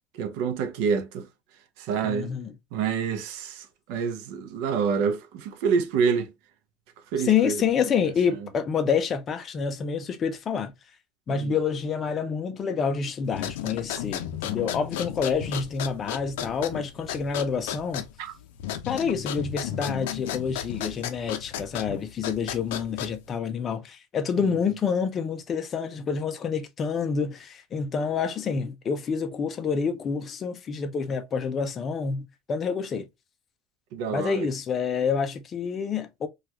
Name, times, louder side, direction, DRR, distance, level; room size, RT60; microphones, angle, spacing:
voice 1, 0.1-1.3 1.8-2.3 2.7-6.3 7.1-7.6 11.3-11.5 18.2-18.3 33.9-34.5, right 6 dB, 55° right, 0.6 m, -27 dB
voice 2, 2.0-2.5 7.2-10.7 11.3-18.0 18.9-33.1 34.1-36.3, left 6 dB, 20° left, 0.4 m, -28 dB
sound 1, 13.3-23.4, left 11 dB, 75° left, 0.5 m, -34 dB
3.3 x 2.3 x 2.8 m
cardioid pair, 175°, 0 cm